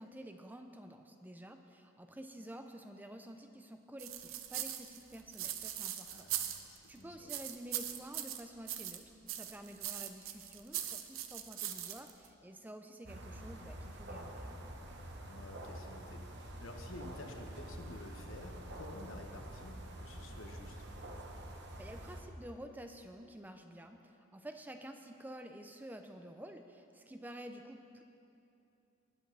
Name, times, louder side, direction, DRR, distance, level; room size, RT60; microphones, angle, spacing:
voice 1, 0.0-6.3 6.9-14.6 21.8-28.0, right 1 dB, 10° right, 6 dB, 0.4 m, -50 dB
sound 1, 4.0-6.9 7.3-9.0 9.3-12.3, right 11 dB, 80° right, 0.6 m, -40 dB
voice 2, 6.1-6.6 6.8-7.3 15.3-20.9, left 2 dB, 75° left, 3 dB, 1.2 m, -51 dB
sound 2, 13.1-22.2, right 1 dB, 55° right, 1.0 m, -47 dB
19.5 x 9.0 x 3.4 m, 2.8 s
head